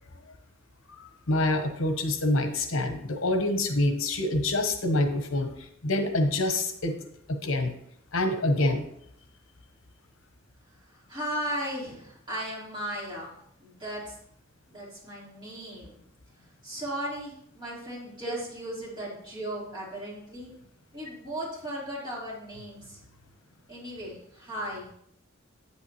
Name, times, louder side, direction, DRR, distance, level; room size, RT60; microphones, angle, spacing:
voice 1, 1.0-7.0 7.3-7.7 8.1-8.9, left 1 dB, 85° left, 6 dB, 1.0 m, -26 dB
voice 2, 10.8-13.3 13.6-14.2 14.7-15.9 16.4-20.5 20.9-23.0 23.7-24.9, equal, 20° right, -7 dB, 3.9 m, -36 dB
8.8 x 8.6 x 3.2 m, 0.71 s
head